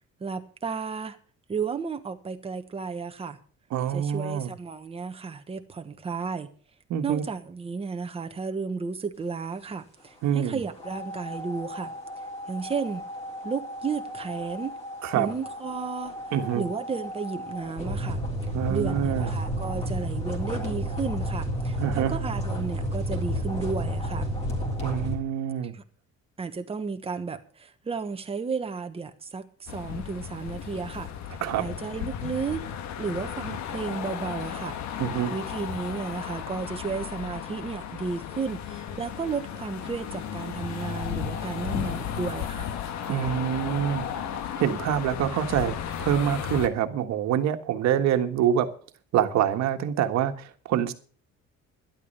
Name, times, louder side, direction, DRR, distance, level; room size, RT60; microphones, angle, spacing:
voice 1, 0.2-1.2 1.5-3.4 3.9-6.5 7.0-11.9 12.5-13.1 13.4-14.8 15.1-16.2 16.5-18.2 18.7-24.3 25.7-25.8 26.4-31.1 31.6-32.6 33.0-34.8 35.3-42.7, right 5 dB, 20° right, 1.2 m, -33 dB
voice 2, 3.7-4.5 6.9-7.2 10.2-10.6 15.0-15.3 16.3-16.6 18.5-19.3 21.8-22.1 24.8-25.7 31.4-31.7 35.0-35.3 43.1-44.1 44.6-48.7 49.1-50.9, right 10 dB, 70° right, 1.6 m, -26 dB
sound 1, 10.8-25.1, equal, 20° left, 3.6 m, -32 dB
sound 2, 29.7-46.7, left 8 dB, 70° left, 1.4 m, -34 dB
12.0 x 11.5 x 5.5 m
cardioid pair, 175°, 29 cm